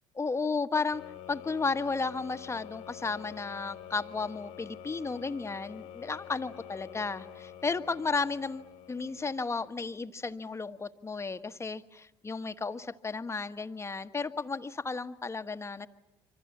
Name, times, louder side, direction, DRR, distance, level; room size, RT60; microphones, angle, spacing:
voice 1, 0.2-1.0 1.3-15.9, left 4 dB, 20° left, 10 dB, 1.4 m, -33 dB
sound 1, 0.9-9.8, left 10 dB, 70° left, 1.6 m, -47 dB
28.0 x 25.0 x 7.3 m, 0.91 s
hypercardioid pair, 65°, 13 cm